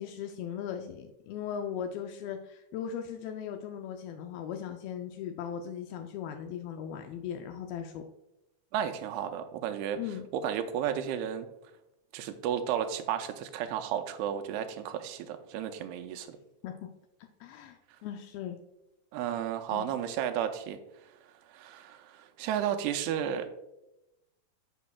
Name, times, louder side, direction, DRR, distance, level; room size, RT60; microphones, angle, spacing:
voice 1, 0.0-8.0 10.0-10.2 16.6-16.9 17.4-18.6 19.7-19.9, left 8 dB, 90° left, 5 dB, 2.1 m, -38 dB
voice 2, 8.7-10.0 10.3-11.5 12.1-16.4 19.1-20.8 21.5-23.5, right 9 dB, 85° right, 7 dB, 2.5 m, -33 dB
14.0 x 5.0 x 2.3 m, 0.90 s
omnidirectional pair, 4.8 m